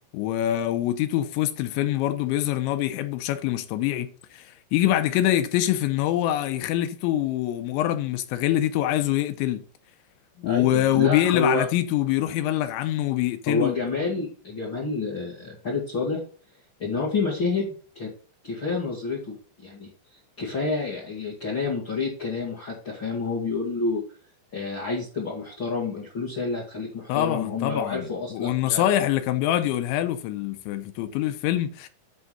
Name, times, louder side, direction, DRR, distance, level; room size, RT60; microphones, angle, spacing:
voice 1, 0.1-9.6 10.4-13.7 27.1-31.9, left 13 dB, 85° left, 3.0 m, -25 dB
voice 2, 10.4-11.6 13.5-16.2 16.8-18.1 18.4-19.9 20.4-24.0 24.5-28.8, left 4 dB, 40° left, 1.8 m, -29 dB
10.5 x 3.7 x 5.6 m
omnidirectional pair, 5.4 m